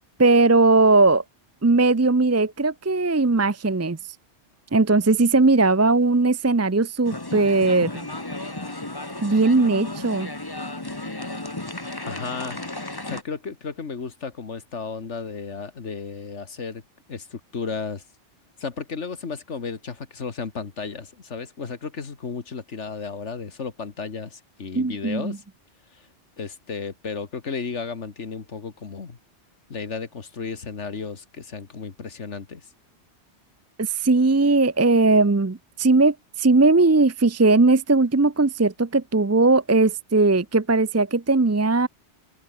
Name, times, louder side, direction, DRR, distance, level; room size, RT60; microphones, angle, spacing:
voice 1, 0.2-1.2 1.6-4.0 4.7-8.1 9.2-10.3 24.8-25.4 33.8-41.9, right 3 dB, 20° right, 0.4 m, -19 dB
sound 1, 7.1-13.2, left 2 dB, 20° left, 1.8 m, -34 dB
voice 2, 12.0-12.6 13.1-16.8 17.1-18.0 18.6-25.4 25.9-26.0 26.4-29.2 29.7-32.6, left 5 dB, 80° left, 2.1 m, -33 dB
omnidirectional pair, 1.2 m